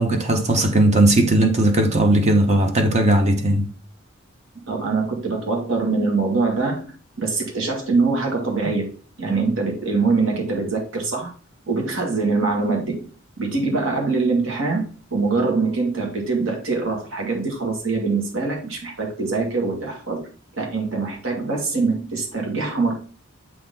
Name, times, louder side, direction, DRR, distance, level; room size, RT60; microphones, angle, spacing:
voice 1, 0.0-3.7, right 1 dB, 35° right, 0.8 m, -17 dB
voice 2, 4.5-6.8 7.2-8.9 9.2-11.3 11.7-12.9 13.4-14.8 15.1-20.3 20.5-22.9, right 3 dB, 75° right, 2.3 m, -23 dB
7.6 x 4.1 x 4.0 m
head